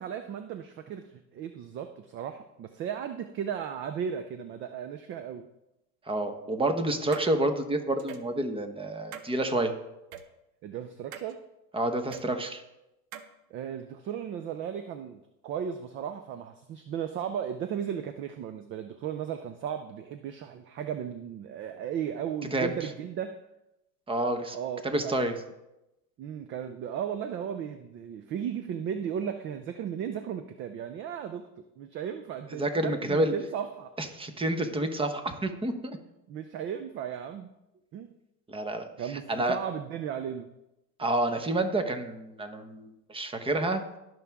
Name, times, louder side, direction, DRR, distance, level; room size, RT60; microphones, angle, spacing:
voice 1, 0.0-5.5 10.6-11.4 13.5-23.4 24.5-25.3 26.2-33.9 36.3-37.5 37.9-38.1 39.0-40.5, right 8 dB, 25° right, 9 dB, 0.4 m, -36 dB
voice 2, 6.1-9.7 11.7-12.6 22.5-22.7 24.1-24.6 24.8-25.3 32.6-33.3 34.0-36.0 38.5-38.9 39.3-39.6 41.0-43.8, right 1 dB, 10° right, 8 dB, 1.0 m, -29 dB
sound 1, 7.1-7.3 8.0-8.3 9.1-9.3 10.1-10.2 11.1-11.3 12.1-12.2 13.1-13.3, right 8 dB, 55° right, 1.0 m, -42 dB
17.5 x 6.1 x 3.5 m, 0.92 s
hypercardioid pair, 105°, 48 cm